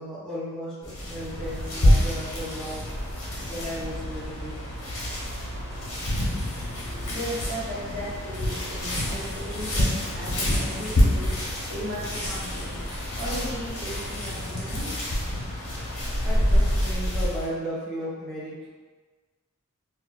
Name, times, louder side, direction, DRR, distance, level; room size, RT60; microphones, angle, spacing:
voice 1, 0.0-2.8 3.5-4.5 16.2-18.7, equal, 5° left, -11 dB, 0.7 m, -35 dB
sound 1, 0.8-17.5, equal, 90° left, 1.0 m, -27 dB
voice 2, 6.9-12.9 13.2-15.1, equal, 55° right, -8 dB, 1.2 m, -36 dB
4.2 x 2.3 x 2.4 m, 1.4 s
head